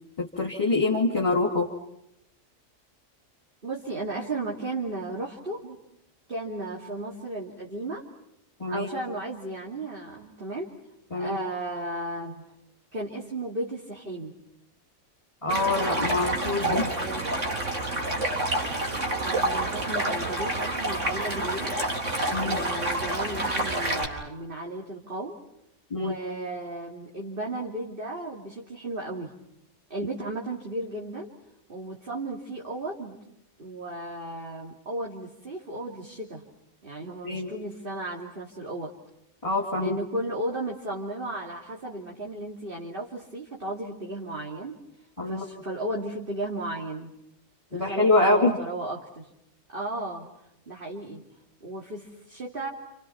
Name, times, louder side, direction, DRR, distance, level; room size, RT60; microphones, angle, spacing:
voice 1, 0.2-1.7 8.6-8.9 11.1-11.4 15.4-16.9 22.3-22.6 25.9-26.2 37.2-37.5 39.4-40.0 45.2-45.4 47.7-48.6, left 2 dB, 25° left, -1 dB, 3.1 m, -25 dB
voice 2, 3.6-5.8 6.3-8.0 8.7-10.7 11.2-12.4 12.9-14.3 16.6-17.3 19.2-21.7 22.4-25.4 25.9-29.3 29.9-31.3 31.7-33.2 33.6-36.4 36.8-38.9 39.8-44.8 45.3-47.1 47.7-49.3 49.7-50.3 50.7-51.2 51.6-52.7, right 2 dB, 40° right, -2 dB, 3.2 m, -34 dB
Stream, 15.5-24.0, right 2 dB, 65° right, 4.2 m, -28 dB
30.0 x 29.5 x 5.9 m, 0.80 s
omnidirectional pair, 1.4 m